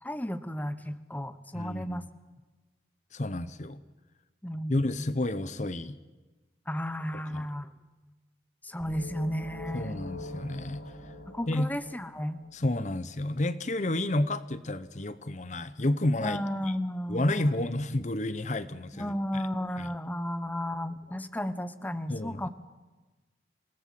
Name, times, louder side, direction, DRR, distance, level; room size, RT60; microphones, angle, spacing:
voice 1, 0.0-2.0 4.4-5.1 6.7-7.7 8.6-10.0 11.3-12.4 16.2-17.6 18.9-22.5, equal, 10° left, 12 dB, 1.0 m, -34 dB
voice 2, 1.5-2.0 3.1-3.8 4.7-6.0 7.1-7.5 9.7-10.8 11.5-11.7 12.5-16.7 17.1-19.4 19.8-19.9 22.1-22.4, left 1 dB, 45° left, 14 dB, 0.8 m, -30 dB
sound 1, 8.8-12.6, equal, 80° left, 5.9 m, -43 dB
27.5 x 18.0 x 7.7 m, 1.2 s
head